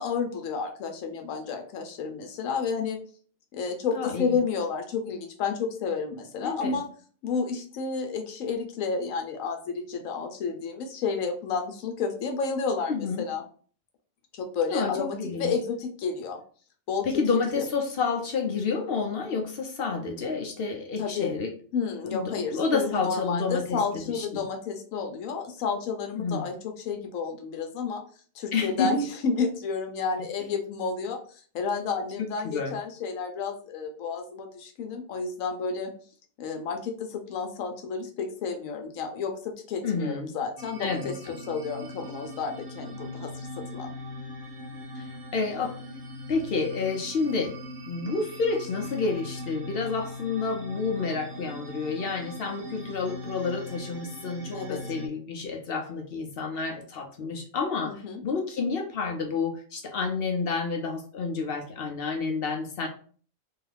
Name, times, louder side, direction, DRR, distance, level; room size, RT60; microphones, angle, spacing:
voice 1, 0.0-3.0 3.5-6.9 7.2-13.4 14.3-16.4 16.9-17.2 17.5-17.7 21.0-21.3 21.7-28.0 28.3-35.9 36.4-43.9 54.5-54.8 57.9-58.2, left 5 dB, 85° left, 4 dB, 1.0 m, -31 dB
voice 2, 3.9-4.4 6.4-6.8 12.9-13.2 14.7-15.5 17.1-21.5 22.0-24.4 26.2-26.5 28.5-28.9 32.2-32.8 39.8-40.3 40.8-41.4 45.0-45.8 46.3-47.6 47.9-62.9, left 4 dB, 60° left, 2 dB, 0.6 m, -29 dB
sound 1, 40.6-55.1, left 1 dB, 75° right, 0.9 m, -40 dB
2.6 x 2.4 x 3.2 m, 0.43 s
omnidirectional pair, 1.4 m